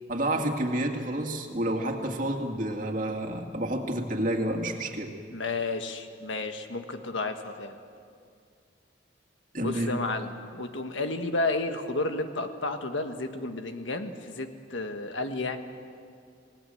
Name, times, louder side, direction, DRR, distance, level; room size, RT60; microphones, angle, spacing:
voice 1, 0.1-5.1 9.5-9.9, right 1 dB, 45° right, 2 dB, 2.2 m, -29 dB
voice 2, 5.3-7.7 9.6-15.6, left 2 dB, 85° left, 6 dB, 1.5 m, -32 dB
28.0 x 19.0 x 7.8 m, 2.3 s
head